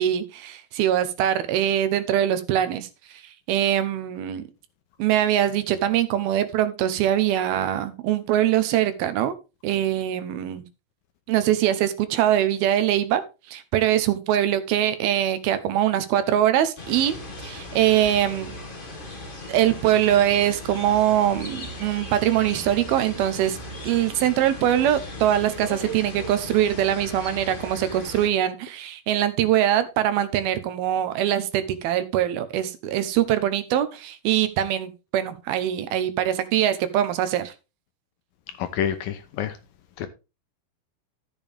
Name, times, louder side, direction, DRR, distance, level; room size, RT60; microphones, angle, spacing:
voice 1, 0.0-3.2 3.5-4.4 5.0-9.3 9.6-10.6 11.3-13.2 13.5-17.2 17.4-18.5 19.5-23.6 23.8-37.5, right 11 dB, 75° right, 2.7 m, -23 dB
sound 1, 16.8-28.3, left 1 dB, 25° left, 1.0 m, -37 dB
voice 2, 38.6-39.5 40.0-40.1, left 9 dB, 75° left, 2.3 m, -27 dB
13.0 x 7.1 x 3.5 m
omnidirectional pair, 4.6 m